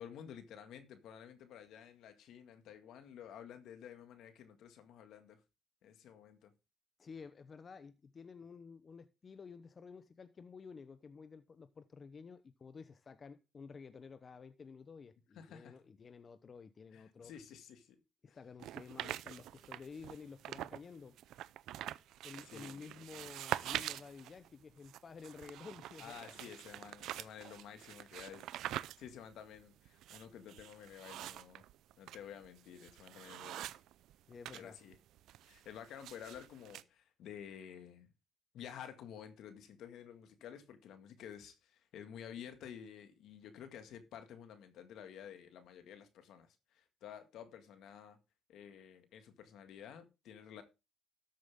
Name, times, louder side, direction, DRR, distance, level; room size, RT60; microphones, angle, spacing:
voice 1, 0.0-5.4 5.8-6.5 15.4-15.8 16.9-18.0 18.3-18.4 22.4-23.2 26.0-28.5 29.0-31.6 32.0-33.7 34.5-35.0 35.4-38.1 38.5-48.2 48.5-50.6, left 9 dB, 80° left, 1.9 m, -52 dB
voice 2, 7.0-17.3 18.2-21.2 22.2-26.4 34.3-34.8, left 5 dB, 40° left, 0.8 m, -52 dB
sound 1, 18.6-20.8 21.2-34.6 34.9-36.8, right 13 dB, 85° right, 0.5 m, -45 dB
13.5 x 7.7 x 3.7 m
cardioid pair, 90°, 0 cm